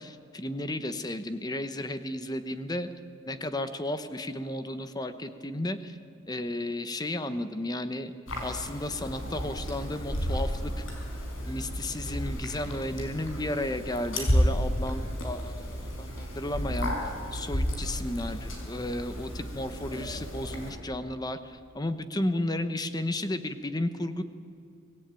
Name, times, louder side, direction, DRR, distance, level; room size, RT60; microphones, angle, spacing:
voice 1, 0.0-2.9 3.2-6.0 6.3-8.1 8.4-10.7 11.5-16.9 17.3-24.2, left 1 dB, 20° left, 10 dB, 1.0 m, -33 dB
sound 1, 8.3-20.7, equal, 75° left, 5.0 m, -32 dB
24.0 x 18.0 x 9.1 m, 2.5 s
head